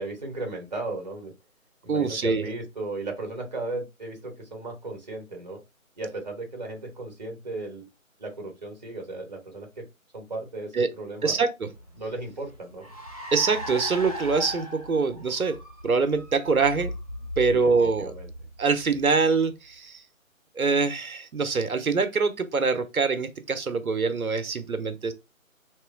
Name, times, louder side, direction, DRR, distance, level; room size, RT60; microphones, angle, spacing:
voice 1, 0.0-1.3 1.8-5.6 6.0-7.9 8.2-9.9 10.1-11.4 12.0-12.9 17.5-18.3, right 2 dB, 30° right, 0.8 m, -36 dB
voice 2, 1.9-2.4 10.7-10.9 11.2-11.7 13.3-16.9 17.4-18.1 18.6-20.0 20.6-25.1, right 4 dB, 90° right, 0.7 m, -24 dB
Car, 11.7-19.5, left 1 dB, 25° left, 0.6 m, -38 dB
3.0 x 2.9 x 2.4 m
figure-of-eight pair, 155°, 42 cm